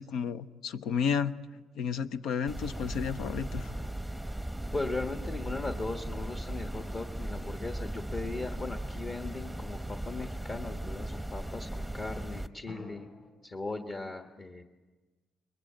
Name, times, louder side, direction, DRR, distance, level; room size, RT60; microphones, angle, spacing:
voice 1, 0.0-1.3 1.8-3.7, left 7 dB, 85° left, 12 dB, 0.7 m, -32 dB
sound 1, 2.5-12.5, right 1 dB, ahead, 0.8 m, -37 dB
sound 2, 3.5-5.6 12.7-13.3, left 2 dB, 60° left, 7.0 m, -51 dB
voice 2, 4.7-13.1 13.4-14.6, left 3 dB, 35° left, 5 dB, 1.4 m, -38 dB
22.0 x 21.5 x 8.7 m, 1.3 s
cardioid pair, 90°, 0 cm